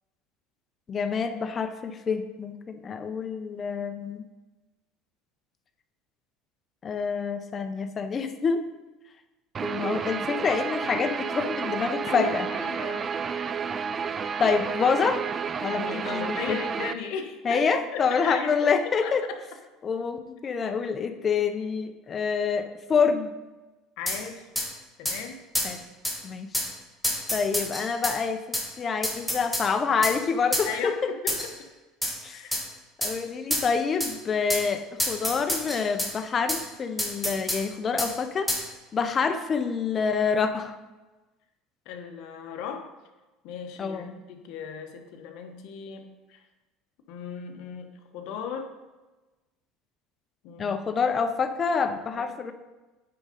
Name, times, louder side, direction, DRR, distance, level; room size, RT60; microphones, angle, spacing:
voice 1, 0.9-4.2 6.8-8.6 9.6-12.5 14.4-15.2 15.6-16.6 17.4-19.2 19.8-23.3 25.6-25.8 26.2-26.5 27.3-30.9 32.2-32.4 33.0-38.5 38.9-40.8 43.8-44.1 50.6-52.5, left 5 dB, 25° left, 8 dB, 0.6 m, -27 dB
Guitar, 9.5-16.9, right 6 dB, 25° right, 0.3 m, -31 dB
voice 2, 12.1-13.1 15.7-17.6 17.9-19.4 24.0-24.5 25.0-25.4 30.7-31.5 32.3-32.5 41.8-42.8 43.4-46.5 47.1-48.7 50.4-51.0 52.2-52.4, left 6 dB, 65° left, 5 dB, 1.0 m, -37 dB
sound 1, 24.1-24.2 24.6-24.7 25.1-25.2 25.6-25.7 26.0-26.2 26.5-26.7 27.0-28.2 28.5-28.7 29.0-29.7 30.0-30.2 30.5-30.7 31.3-31.5 32.0-32.2 32.5-32.6 33.0-33.1 33.5-33.7 34.0-34.1 34.5-34.7 35.0-36.1 36.5-36.6 37.0-37.6 38.0-38.1 38.5-38.6, left 1 dB, ahead, 1.2 m, -28 dB
9.4 x 3.8 x 5.1 m, 1.2 s
cardioid pair, 140°, 0 cm